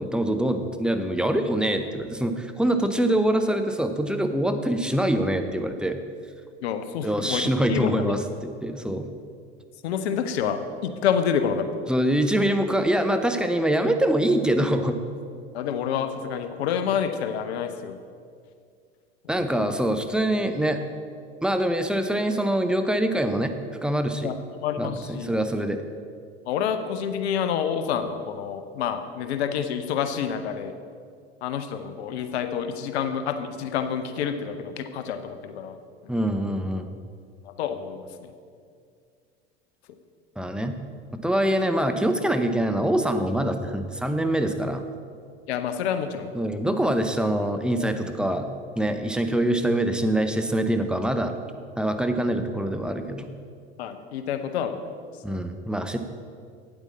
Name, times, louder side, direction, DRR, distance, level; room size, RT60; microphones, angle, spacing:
voice 1, 0.0-6.0 7.0-8.2 8.6-9.1 11.9-15.0 19.3-20.8 21.4-23.5 23.8-24.3 24.8-25.8 36.1-36.9 40.4-40.8 41.2-44.8 46.3-51.3 51.8-53.3 55.2-56.0, right 1 dB, 5° right, 7 dB, 0.6 m, -24 dB
voice 2, 6.6-7.4 7.7-8.0 9.8-11.7 15.5-18.0 19.4-19.5 24.2-24.3 24.6-25.3 26.5-30.7 31.4-35.8 36.0-36.1 37.4-38.3 45.5-46.3 53.8-54.8, left 8 dB, 75° left, 8 dB, 0.8 m, -28 dB
8.9 x 8.2 x 4.1 m, 2.2 s
hypercardioid pair, 80°, 32 cm